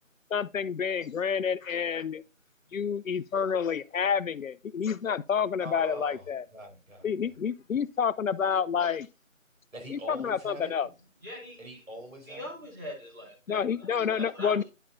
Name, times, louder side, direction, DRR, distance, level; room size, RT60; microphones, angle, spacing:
voice 1, 0.3-2.2 2.7-6.4 7.0-9.1 9.9-10.9 13.5-14.6, left 7 dB, 80° left, 0.6 m, -29 dB
voice 2, 5.6-7.1 9.7-10.7 11.6-12.5, right 1 dB, 80° right, 4.7 m, -42 dB
voice 3, 11.2-11.8 12.3-14.6, equal, 15° right, 1.9 m, -42 dB
10.0 x 5.6 x 2.5 m
figure-of-eight pair, 170°, 40 cm